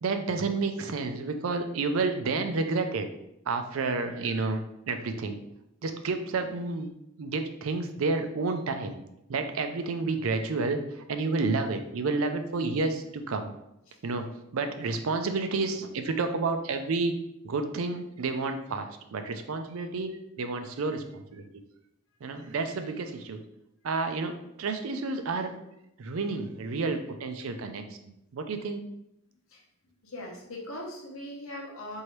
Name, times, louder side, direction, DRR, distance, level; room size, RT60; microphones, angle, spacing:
voice 1, 0.0-3.1 3.5-4.6 4.9-5.4 5.8-6.9 7.2-9.0 9.3-13.5 14.0-14.3 14.5-17.1 17.4-21.4 22.2-23.4 23.8-25.6 26.0-28.8, right 3 dB, 80° right, 7 dB, 0.5 m, -30 dB
voice 2, 30.0-32.0, left 1 dB, 80° left, 0 dB, 1.0 m, -40 dB
4.5 x 2.7 x 3.1 m, 0.82 s
head